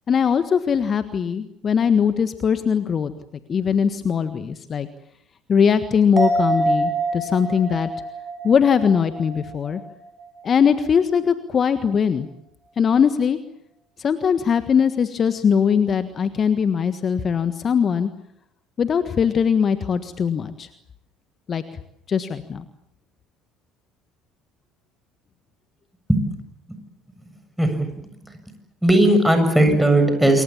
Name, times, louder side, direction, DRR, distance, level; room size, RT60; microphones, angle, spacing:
voice 1, 0.1-3.1 3.5-4.9 5.5-7.9 8.4-9.8 10.4-12.3 12.8-13.4 14.0-18.1 18.8-20.7 21.5-21.6 22.1-22.6, left 7 dB, 40° left, 11 dB, 1.5 m, -20 dB
sound 1, 6.2-9.9 10.2-10.3, right 2 dB, 20° right, 6.8 m, -25 dB
voice 2, 27.6-27.9 28.2-28.3 28.8-30.4, right 1 dB, 5° right, 7 dB, 7.5 m, -17 dB
28.0 x 23.5 x 7.3 m, 0.74 s
hypercardioid pair, 60°, 0 cm